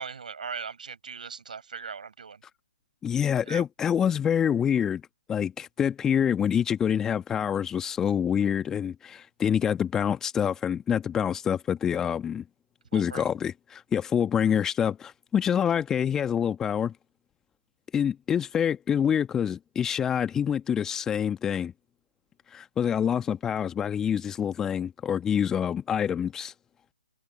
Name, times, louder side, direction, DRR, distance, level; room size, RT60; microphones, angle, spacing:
voice 1, 0.0-2.4 3.4-3.6 12.9-13.3, right 6 dB, 60° right, 5.4 m, -39 dB
voice 2, 3.0-5.0 5.3-12.4 12.9-16.9 17.9-21.7 22.5-26.5, left 8 dB, 10° left, 1.4 m, -26 dB
figure-of-eight pair, 140°, 5 cm